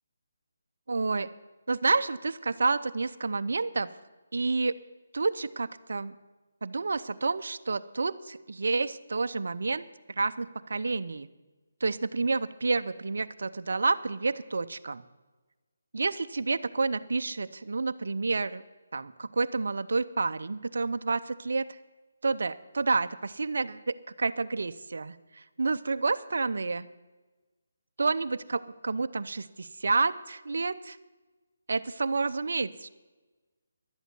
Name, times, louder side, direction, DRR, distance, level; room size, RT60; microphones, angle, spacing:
voice 1, 0.9-1.3 1.7-3.9 4.3-4.7 5.1-6.1 6.6-9.8 10.2-11.3 11.8-15.0 15.9-18.6 18.9-21.6 22.2-26.9 28.0-31.0 31.7-32.9, right 3 dB, 70° right, 11 dB, 0.6 m, -29 dB
11.5 x 8.1 x 9.3 m, 1.2 s
figure-of-eight pair, 160°, 0 cm